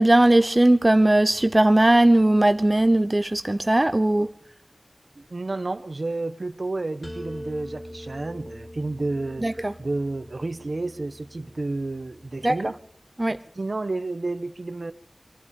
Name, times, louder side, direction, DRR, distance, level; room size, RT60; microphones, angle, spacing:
voice 1, 0.0-4.3 9.4-9.7 12.4-12.6 13.2-13.4, right 1 dB, 35° right, 0.8 m, -18 dB
voice 2, 5.2-12.7 13.5-14.9, right 2 dB, 75° right, 1.0 m, -31 dB
sound 1, 7.0-12.8, equal, 50° left, 3.9 m, -42 dB
23.0 x 12.0 x 5.3 m
wide cardioid pair, 55°, 0 cm